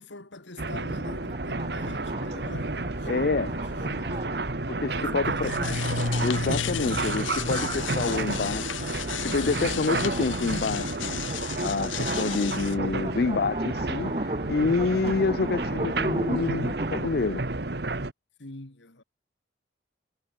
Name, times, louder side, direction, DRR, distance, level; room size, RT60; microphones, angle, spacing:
voice 1, 0.0-4.2 5.0-5.9 18.4-19.0, left 2 dB, 70° left, 2.4 m, -43 dB
sound 1, 0.6-18.1, right 2 dB, 60° right, 1.6 m, -31 dB
sound 2, 1.0-17.1, right 1 dB, 30° right, 3.2 m, -37 dB
voice 2, 3.1-3.5 4.7-5.5 6.2-11.2 11.6-17.4, left 4 dB, 55° left, 0.5 m, -28 dB
sound 3, 5.2-12.7, left 6 dB, 90° left, 0.9 m, -33 dB
head